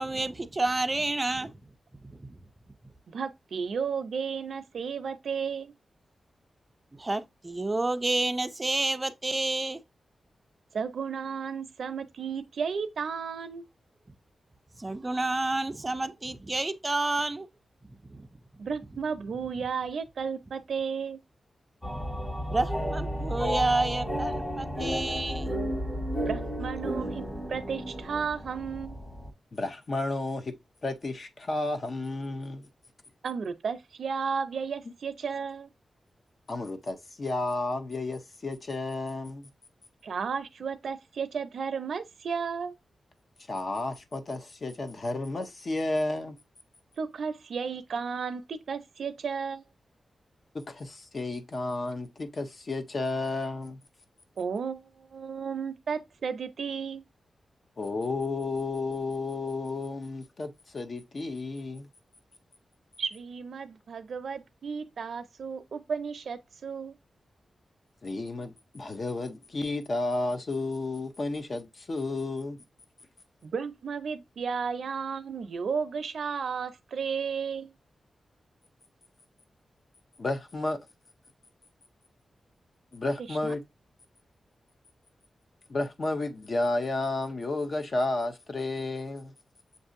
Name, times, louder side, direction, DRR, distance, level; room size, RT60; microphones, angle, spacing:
voice 1, 0.0-1.6 2.0-2.4 6.9-9.8 14.8-17.5 18.1-18.3 22.5-25.5, right 2 dB, 20° right, 0.4 m, -29 dB
voice 2, 3.1-5.7 10.7-13.7 18.6-21.2 26.3-27.2 27.5-29.0 33.2-35.7 40.0-42.7 47.0-49.6 54.4-57.0 63.0-66.9 73.4-77.7 83.3-83.6, right 6 dB, 70° right, 0.5 m, -33 dB
sound 1, 21.8-29.3, equal, 20° left, 1.4 m, -32 dB
voice 3, 29.5-30.5 30.8-32.7 36.5-39.5 43.5-46.4 50.5-53.8 57.8-61.9 68.0-72.6 80.2-80.8 82.9-83.6 85.7-89.3, left 2 dB, 40° left, 0.6 m, -32 dB
7.1 x 2.6 x 2.5 m
wide cardioid pair, 145°, 0 cm